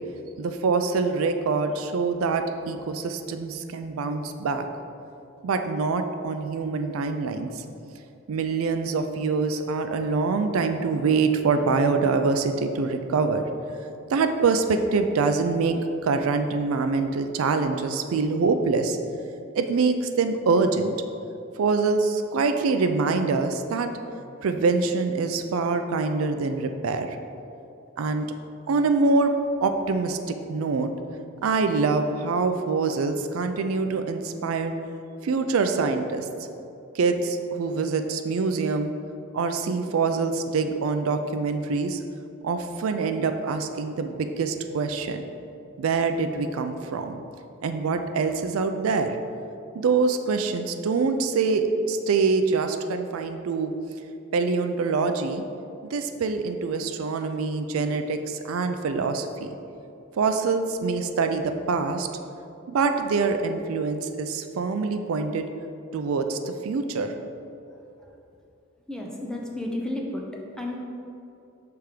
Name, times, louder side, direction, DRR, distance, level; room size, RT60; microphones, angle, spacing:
voice 1, 0.4-4.6 5.4-7.5 8.3-13.4 14.1-19.0 19.5-20.9 21.6-23.9 24.4-27.1 28.0-28.3 28.7-29.3 29.6-30.2 30.5-30.9 31.4-34.7 35.2-36.2 36.9-38.9 39.3-42.0 42.4-45.2 45.8-47.2 47.6-49.2 49.7-53.7 54.3-55.4 55.9-59.5 60.2-62.1 62.7-65.5 65.9-67.1, right 4 dB, 80° right, 7 dB, 0.4 m, -25 dB
voice 2, 68.9-70.8, left 1 dB, 5° left, -1 dB, 0.6 m, -32 dB
5.9 x 3.5 x 4.9 m, 2.6 s
head